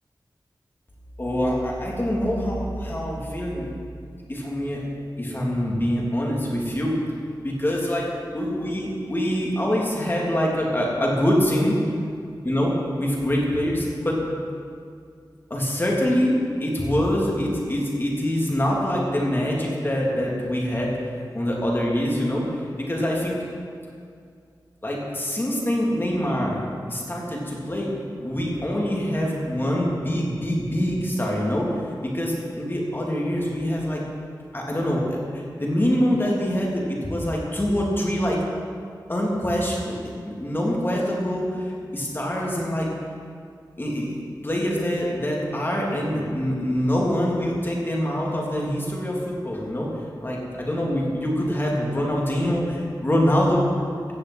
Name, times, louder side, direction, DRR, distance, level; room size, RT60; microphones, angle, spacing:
voice 1, 1.2-3.7 4.3-4.8 5.2-7.0 7.4-8.1 8.3-11.8 12.4-14.2 15.5-20.9 21.3-22.4 22.9-23.4 24.8-27.9 28.2-31.7 32.0-34.0 34.5-38.4 39.1-39.9 40.2-42.9 43.8-49.9 50.2-53.7, equal, 30° left, -3 dB, 3.2 m, -24 dB
15.5 x 7.5 x 8.2 m, 2.2 s
wide cardioid pair, 100°, 8 cm